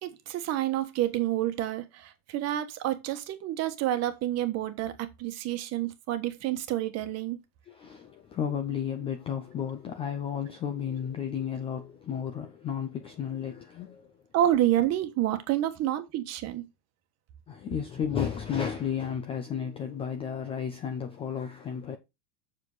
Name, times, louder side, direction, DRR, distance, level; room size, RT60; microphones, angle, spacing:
voice 1, 0.0-7.4 14.3-16.6, right 13 dB, 35° right, 1.3 m, -29 dB
voice 2, 7.7-14.1 17.5-22.0, left 8 dB, 15° left, 0.4 m, -33 dB
7.4 x 6.6 x 4.0 m
supercardioid pair, 150°, 45 cm